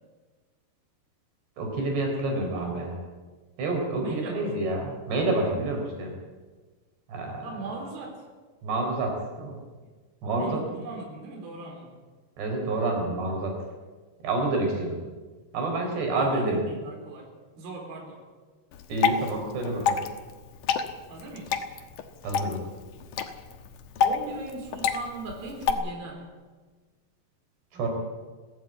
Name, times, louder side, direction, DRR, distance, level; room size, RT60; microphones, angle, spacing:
voice 1, 1.6-3.0 3.6-6.1 7.1-7.5 8.6-9.6 10.2-10.6 12.4-13.6 14.2-15.0 15.5-16.6 18.9-20.0 22.2-22.6 27.7-27.9, right 2 dB, 75° right, 2 dB, 6.2 m, -28 dB
voice 2, 4.0-4.8 7.4-8.3 10.4-12.0 14.8-14.9 15.8-17.3 17.6-18.2 21.1-21.6 24.0-26.3 27.7-27.9, right 3 dB, 60° right, 1 dB, 5.7 m, -38 dB
Water / Drip, 18.7-25.7, left 7 dB, 60° left, 2.3 m, -29 dB
21.5 x 15.5 x 8.9 m, 1.3 s
omnidirectional pair, 4.9 m